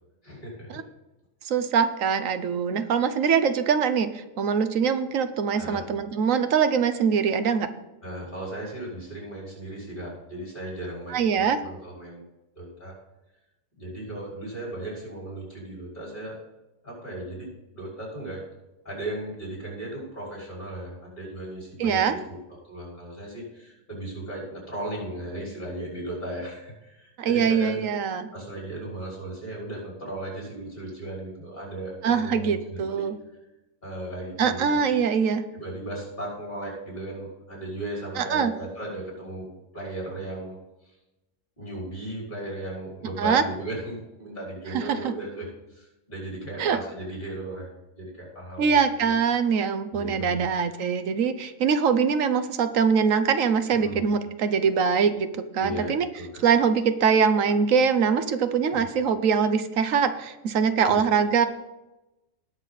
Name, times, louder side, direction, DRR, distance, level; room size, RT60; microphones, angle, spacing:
voice 1, 0.2-0.8 5.6-5.8 8.0-12.2 12.6-12.9 13.8-16.4 16.8-18.4 18.8-22.4 22.7-27.8 28.3-33.1 33.8-34.8 35.5-39.5 39.7-40.6 41.6-47.7 48.0-49.1 49.9-50.5 53.8-54.0 55.6-56.4 58.7-58.9 60.8-61.0, right 1 dB, 40° left, -4 dB, 5.5 m, -36 dB
voice 2, 1.4-7.7 11.1-11.6 21.8-22.2 27.2-28.3 32.0-33.2 34.4-35.4 38.2-38.5 43.2-43.4 44.7-45.1 46.6-46.8 48.6-56.1 56.4-61.5, right 6 dB, 85° right, 10 dB, 1.3 m, -23 dB
19.0 x 6.7 x 4.1 m, 0.99 s
omnidirectional pair, 1.3 m